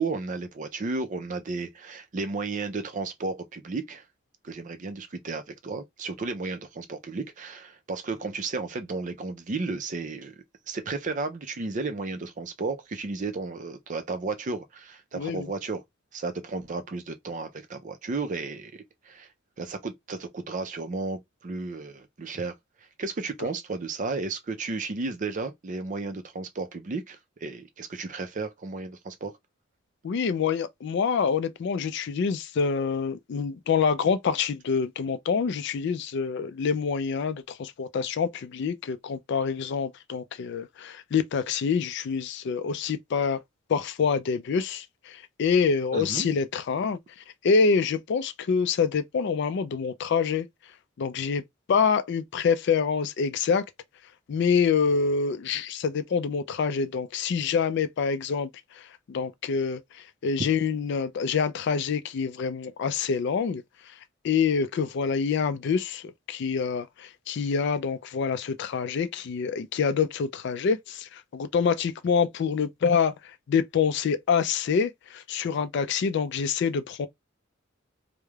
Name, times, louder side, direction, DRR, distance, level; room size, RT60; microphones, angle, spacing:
voice 1, 0.0-4.0 4.4-10.3 10.7-15.8 16.1-19.3 19.6-22.5 23.0-29.3 45.9-46.3, right 3 dB, 40° right, 0.4 m, -33 dB
voice 2, 15.1-15.5 30.0-43.4 43.7-47.0 47.4-50.5 51.0-51.4 51.7-53.6 54.3-63.6 64.2-77.1, left 6 dB, 55° left, 0.3 m, -26 dB
3.1 x 2.0 x 2.3 m
head